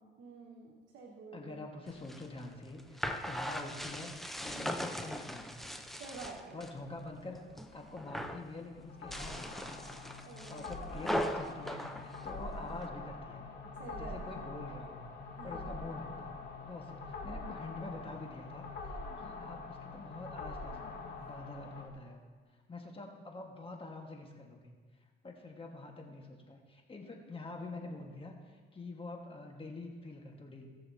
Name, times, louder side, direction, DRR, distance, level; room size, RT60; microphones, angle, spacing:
voice 1, 0.0-1.7 4.4-4.8 6.0-6.7 10.2-11.0 13.8-14.5 15.4-15.8, right 4 dB, 75° right, -2 dB, 1.5 m, -49 dB
voice 2, 1.3-4.1 4.4-5.8 6.5-7.4 7.7-9.8 10.3-13.5 13.9-15.1 15.4-16.3 16.6-20.9 21.2-22.2 22.7-24.7 25.2-30.7, left 2 dB, 25° left, 1 dB, 1.6 m, -46 dB
sound 1, 1.9-6.8 7.1-7.7 8.0-8.5 9.0-12.9, equal, ahead, 0.7 m, -39 dB
sound 2, 7.4-21.9, left 3 dB, 65° left, 1.8 m, -45 dB
18.5 x 6.8 x 2.8 m, 1.5 s
cardioid pair, 90°, 20 cm